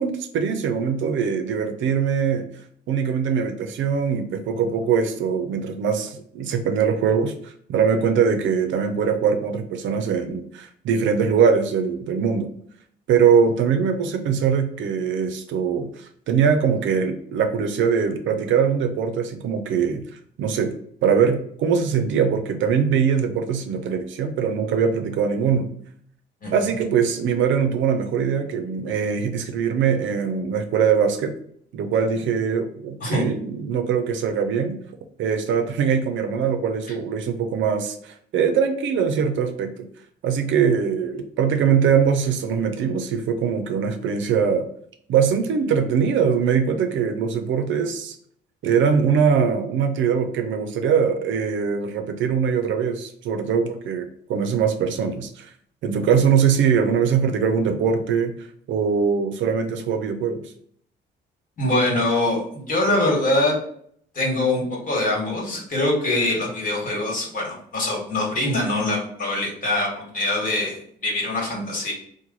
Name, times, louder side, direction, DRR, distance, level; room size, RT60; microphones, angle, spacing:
voice 1, 0.0-2.5 2.9-12.5 13.1-20.0 20.4-20.7 21.0-25.7 26.5-31.3 31.7-34.8 35.2-39.9 40.2-44.7 45.1-48.2 48.6-55.5 55.8-58.4 58.7-60.4, right 6 dB, 75° right, 7 dB, 0.5 m, -22 dB
voice 2, 61.6-63.6 64.1-70.8 71.0-71.9, left 2 dB, 45° left, -2 dB, 1.5 m, -23 dB
3.0 x 2.2 x 3.8 m, 0.64 s
cardioid pair, 90°, 20 cm